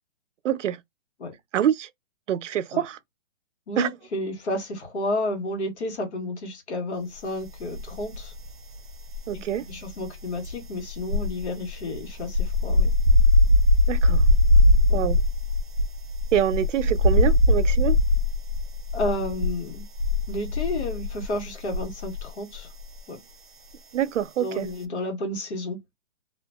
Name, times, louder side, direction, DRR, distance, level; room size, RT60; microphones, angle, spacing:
voice 1, 0.4-0.8 1.5-1.9 2.3-3.0 3.8-3.9 9.3-9.6 13.9-14.3 14.9-15.2 16.3-18.0 23.9-24.7, right 10 dB, 85° right, 0.5 m, -25 dB
voice 2, 3.7-8.3 9.6-12.9 14.9-15.0 18.9-19.8 20.3-22.7 23.1-23.2 24.4-25.8, left 1 dB, 65° left, 1.5 m, -31 dB
sound 1, 7.7-8.5 8.8-22.3 22.6-22.8, left 1 dB, 45° right, 0.6 m, -21 dB
2.8 x 2.5 x 2.2 m
hypercardioid pair, 180°, 36 cm